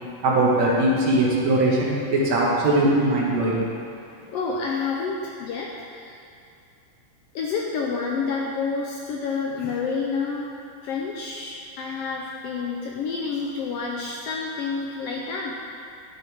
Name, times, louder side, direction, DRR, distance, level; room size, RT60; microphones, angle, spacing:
voice 1, 0.2-3.7, right 1 dB, 70° right, -5 dB, 2.7 m, -20 dB
voice 2, 4.3-6.2 7.3-10.5 10.8-15.5, left 5 dB, 75° left, -1 dB, 1.5 m, -29 dB
11.5 x 7.5 x 3.6 m, 2.6 s
omnidirectional pair, 3.3 m